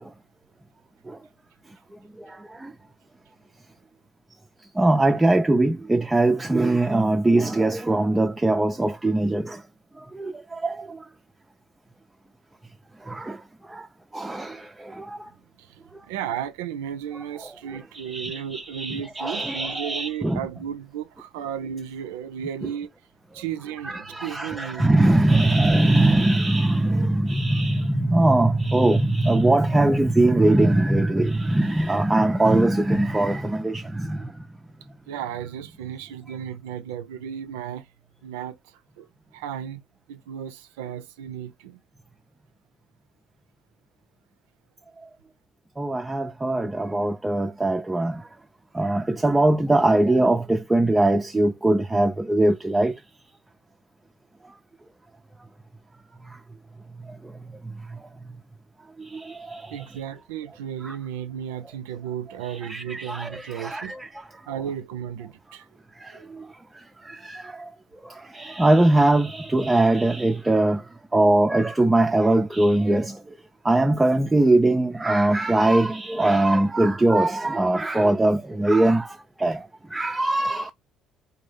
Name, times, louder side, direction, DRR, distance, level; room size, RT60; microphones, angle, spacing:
voice 1, 2.2-2.7 4.8-9.6 10.1-11.0 13.1-13.4 13.7-13.9 14.1-15.2 17.4-20.4 22.6-22.7 23.8-34.3 45.8-48.2 48.7-52.9 59.0-59.9 60.8-60.9 62.5-64.2 66.0-66.4 67.0-67.7 68.3-70.8 71.1-73.2 73.6-80.7, right 2 dB, 15° right, 0.4 m, -21 dB
voice 2, 16.0-22.9 23.3-25.0 35.1-37.9 38.2-38.6 39.0-39.1 39.3-39.8 40.1-41.8 59.7-64.0 64.5-65.7 66.1-66.3, right 9 dB, 80° right, 0.4 m, -34 dB
2.5 x 2.2 x 3.4 m
hypercardioid pair, 60°, 0 cm